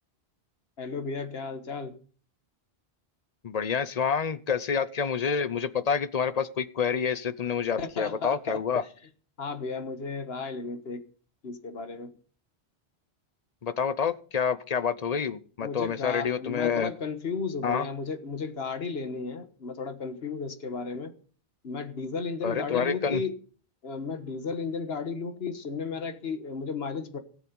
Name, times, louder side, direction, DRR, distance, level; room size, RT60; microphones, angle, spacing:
voice 1, 0.8-2.0 7.8-8.6 9.4-11.0 11.4-12.1 15.6-21.2 21.6-23.4 23.8-27.2, left 4 dB, 70° left, 1.6 m, -34 dB
voice 2, 3.4-8.8 13.6-16.9 17.6-17.9 22.4-23.2, left 6 dB, 45° left, 0.8 m, -28 dB
17.5 x 7.4 x 5.3 m
omnidirectional pair, 1.1 m